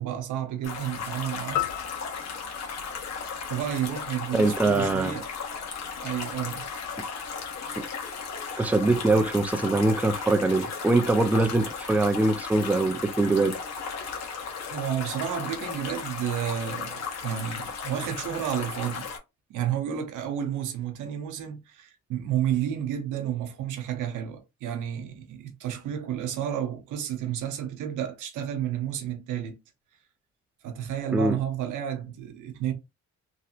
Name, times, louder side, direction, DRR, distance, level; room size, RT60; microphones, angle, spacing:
voice 1, 0.0-1.6 3.5-5.3 6.0-6.6 14.7-19.1 19.5-29.6 30.6-32.7, right 10 dB, 90° right, 0.8 m, -31 dB
sound 1, 0.6-19.2, left 5 dB, 60° left, 1.0 m, -36 dB
sound 2, 1.6-4.0, left 14 dB, 85° left, 0.6 m, -35 dB
voice 2, 4.3-5.2 7.8-7.9 8.6-13.6 31.1-31.4, right 2 dB, 5° right, 0.4 m, -23 dB
3.1 x 2.8 x 2.4 m
cardioid pair, 90°, 30 cm